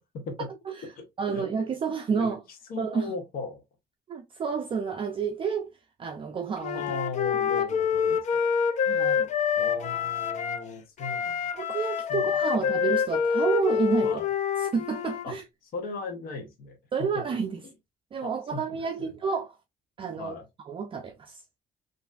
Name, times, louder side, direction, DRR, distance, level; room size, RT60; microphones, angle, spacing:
voice 1, 0.0-0.5 1.0-1.4 2.1-3.6 6.8-8.5 9.6-11.5 12.1-12.3 12.6-12.7 14.0-14.3 15.2-15.4 15.7-17.1 18.2-19.1 20.2-20.5, left 3 dB, 60° left, 0.8 m, -38 dB
voice 2, 1.2-2.4 2.8-3.1 4.1-6.8 8.9-9.3 11.6-14.2 14.6-15.4 16.9-17.6 18.1-19.6 20.0-20.3 20.6-21.4, right 6 dB, 30° right, 0.4 m, -30 dB
Wind instrument woodwind instrument, 6.6-10.7 11.0-15.2, left 7 dB, 45° left, 0.4 m, -27 dB
3.2 x 2.5 x 2.4 m
cardioid pair, 110°, 17 cm